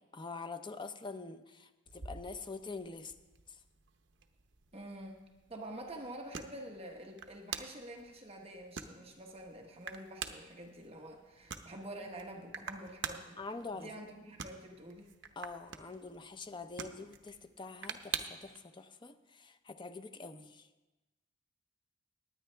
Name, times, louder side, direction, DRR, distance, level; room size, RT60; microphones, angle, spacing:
voice 1, 0.0-3.1 3.5-3.6 12.4-12.7 13.4-13.9 15.4-20.7, left 3 dB, 25° left, 9 dB, 0.6 m, -45 dB
sound 1, 1.9-18.6, right 7 dB, 70° right, 0.8 m, -47 dB
voice 2, 4.7-5.2 5.5-13.4 13.7-15.1, right 1 dB, 30° right, 1 dB, 1.2 m, -47 dB
19.5 x 9.2 x 3.4 m, 1.1 s
head